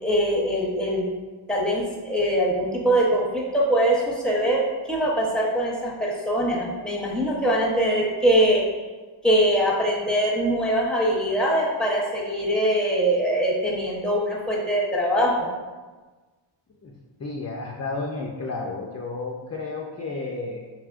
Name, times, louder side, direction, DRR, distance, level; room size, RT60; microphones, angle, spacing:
voice 1, 0.0-1.0 1.5-4.6 4.9-8.6 9.2-15.5, equal, ahead, -3 dB, 0.8 m, -22 dB
voice 2, 16.8-20.7, left 3 dB, 35° left, -1 dB, 0.4 m, -32 dB
4.8 x 3.1 x 2.4 m, 1.3 s
wide cardioid pair, 95°, 50 cm